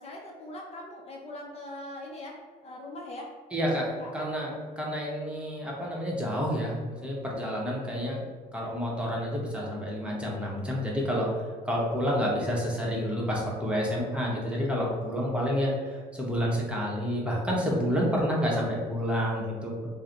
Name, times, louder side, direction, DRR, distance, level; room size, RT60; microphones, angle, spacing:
voice 1, 0.0-3.3 4.0-4.1 4.7-4.8, left 1 dB, 40° left, -1 dB, 0.5 m, -41 dB
voice 2, 3.5-8.2 8.5-11.3 11.6-19.7, equal, 5° right, -4 dB, 0.8 m, -29 dB
3.2 x 2.0 x 3.8 m, 1.6 s
cardioid pair, 110°, 17 cm